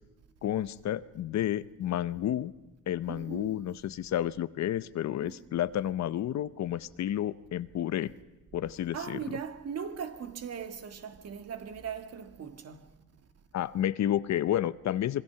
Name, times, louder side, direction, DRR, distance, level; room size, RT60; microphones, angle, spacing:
voice 1, 0.4-2.5 2.9-8.1 8.5-9.2 13.5-15.2, left 11 dB, 65° left, 0.8 m, -31 dB
voice 2, 3.1-3.6 5.2-5.4 8.9-12.9, right 7 dB, 55° right, 1.8 m, -39 dB
26.0 x 22.5 x 5.8 m
cardioid pair, 90°, 30 cm